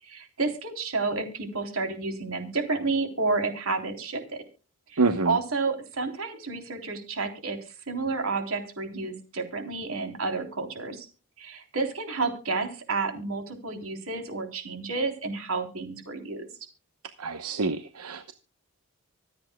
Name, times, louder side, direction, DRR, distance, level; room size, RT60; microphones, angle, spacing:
voice 1, 0.0-4.4 4.9-7.6 7.9-11.1 11.4-16.5, right 3 dB, 65° right, 5 dB, 3.5 m, -30 dB
voice 2, 5.0-5.4 17.2-18.3, right 3 dB, 90° right, 9 dB, 1.0 m, -27 dB
25.5 x 8.6 x 2.3 m, 0.33 s
head